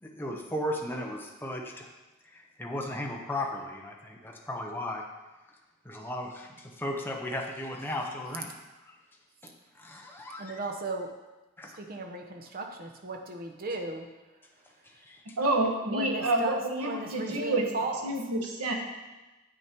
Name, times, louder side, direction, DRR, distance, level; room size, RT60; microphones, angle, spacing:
voice 1, 0.0-1.9 2.3-5.0 5.8-8.5 9.4-9.5 9.8-10.6 11.6-11.7 15.0-15.2, left 1 dB, 10° left, 0 dB, 0.8 m, -36 dB
voice 2, 10.4-11.1 11.6-14.1 15.9-18.1, right 3 dB, 40° right, 4 dB, 0.9 m, -36 dB
voice 3, 15.4-17.7 18.0-18.7, right 2 dB, 90° right, 1 dB, 1.4 m, -28 dB
8.2 x 6.4 x 4.5 m, 1.1 s
head